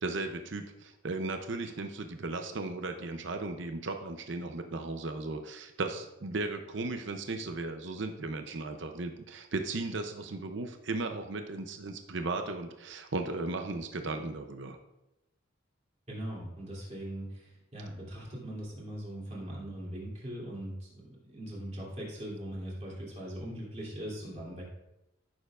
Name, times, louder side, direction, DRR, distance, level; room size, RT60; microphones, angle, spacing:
voice 1, 0.0-14.8, right 3 dB, 60° right, 6 dB, 0.6 m, -36 dB
voice 2, 16.1-24.6, right 1 dB, 30° right, -5 dB, 2.7 m, -40 dB
14.0 x 6.7 x 2.4 m, 0.93 s
head